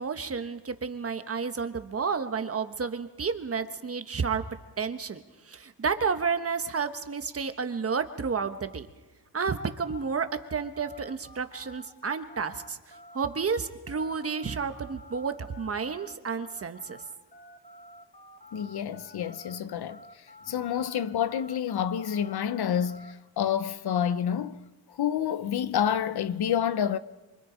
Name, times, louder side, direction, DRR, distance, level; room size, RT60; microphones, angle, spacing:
voice 1, 0.0-4.4 4.8-8.9 9.3-17.0, right 5 dB, 35° right, 1.2 m, -31 dB
sound 1, 9.4-19.6 19.9-23.1, equal, 20° left, 1.8 m, -50 dB
voice 2, 18.5-20.0 20.5-24.6 25.0-27.0, left 9 dB, 65° left, 0.8 m, -28 dB
27.0 x 25.0 x 5.1 m
wide cardioid pair, 150°, 41 cm